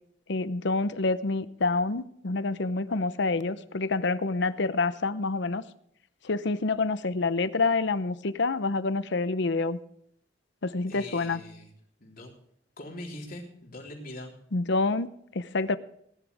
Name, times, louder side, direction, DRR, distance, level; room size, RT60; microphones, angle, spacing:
voice 1, 0.3-5.6 6.2-9.8 10.6-11.4 14.5-15.1 15.3-15.8, left 3 dB, 65° left, 15 dB, 0.8 m, -27 dB
voice 2, 10.9-11.7 12.0-12.3 12.8-14.4, left 1 dB, 50° left, 0 dB, 3.7 m, -42 dB
19.5 x 11.0 x 3.5 m, 0.70 s
head